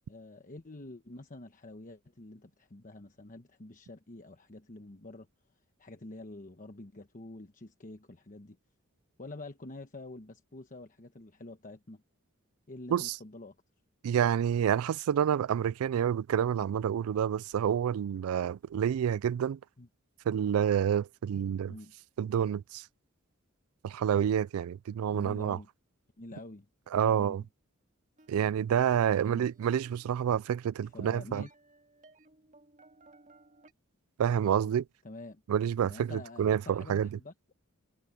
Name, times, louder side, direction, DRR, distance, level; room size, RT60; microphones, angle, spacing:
voice 1, 0.1-5.3 5.8-8.6 9.2-12.0 12.7-13.5 19.8-19.9 21.7-21.9 25.1-25.7 26.2-26.7 26.9-27.5 29.2-29.5 30.9-31.5 35.0-35.4 35.9-37.3, left 2 dB, 40° left, 1.2 m, -47 dB
voice 2, 14.0-19.6 20.3-21.7 22.2-22.8 23.8-25.6 26.9-27.4 28.3-31.5 34.2-34.8 35.5-37.1, right 9 dB, 90° right, 0.3 m, -28 dB
sound 1, 28.2-33.7, right 2 dB, 35° right, 2.4 m, -61 dB
head